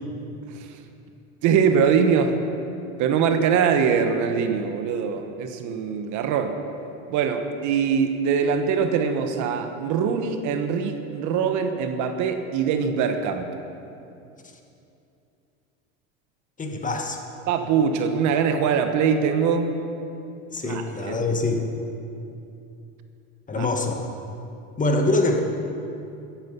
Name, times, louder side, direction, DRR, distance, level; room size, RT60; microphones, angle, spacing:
voice 1, 1.4-2.4 3.0-6.6 7.1-13.5 17.5-19.8 20.6-21.2 23.6-23.7, right 6 dB, 55° right, 7 dB, 1.2 m, -23 dB
voice 2, 16.6-17.2 20.5-21.7 23.5-24.1 24.8-25.4, left 2 dB, 20° left, 3 dB, 1.6 m, -24 dB
14.0 x 10.5 x 5.5 m, 2.7 s
supercardioid pair, 100°, 34 cm